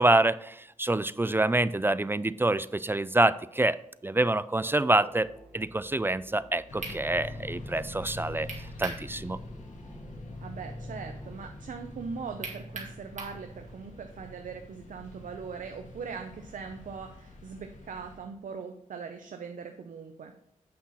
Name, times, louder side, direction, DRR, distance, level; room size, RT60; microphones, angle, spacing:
voice 1, 0.0-9.4, right 2 dB, 15° right, 16 dB, 0.3 m, -26 dB
sound 1, 4.6-11.6, right 1 dB, 5° left, 3.4 m, -52 dB
sound 2, 6.7-18.2, left 1 dB, 70° left, 1.7 m, -44 dB
sound 3, 6.8-7.0 8.5-9.0 9.4-9.5 12.4-13.4, right 3 dB, 65° right, 2.1 m, -38 dB
voice 2, 10.4-20.3, right 5 dB, 85° right, 5 dB, 0.7 m, -41 dB
8.6 x 5.7 x 4.2 m, 0.78 s
wide cardioid pair, 90°, 13 cm